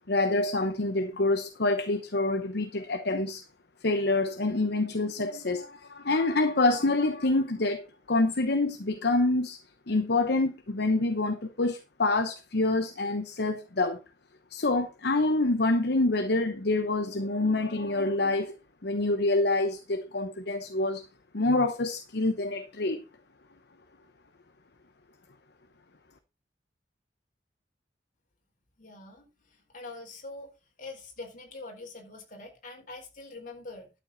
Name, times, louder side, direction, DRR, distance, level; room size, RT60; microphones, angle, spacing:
voice 1, 0.1-3.4 3.8-9.6 9.9-14.0 14.5-18.5 18.8-21.1 21.3-23.0, left 2 dB, 65° left, 1.0 m, -26 dB
voice 2, 28.8-30.5 30.8-33.9, left 2 dB, 50° left, 4.2 m, -44 dB
12.0 x 7.7 x 4.1 m
head